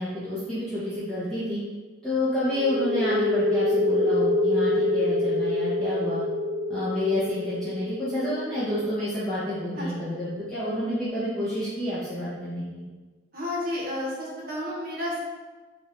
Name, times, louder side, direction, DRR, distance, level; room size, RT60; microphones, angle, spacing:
voice 1, 0.0-1.6 2.0-6.2 6.7-12.8, left 1 dB, 5° left, -13 dB, 0.8 m, -29 dB
sound 1, 2.5-9.9, left 2 dB, 90° left, 1.0 m, -26 dB
voice 2, 13.3-15.2, left 1 dB, 50° right, -4 dB, 1.0 m, -31 dB
4.8 x 2.5 x 3.1 m, 1.3 s
head